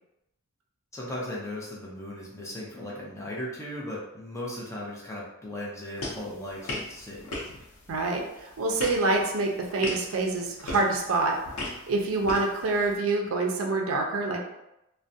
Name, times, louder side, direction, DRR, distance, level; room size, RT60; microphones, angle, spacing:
voice 1, 0.9-7.2, left 1 dB, 15° left, -4 dB, 0.5 m, -37 dB
sound 1, 5.9-13.0, left 2 dB, 85° left, 0.7 m, -39 dB
voice 2, 7.9-11.4 11.9-14.4, right 3 dB, 65° right, 2 dB, 0.4 m, -26 dB
2.4 x 2.1 x 2.6 m, 0.88 s
head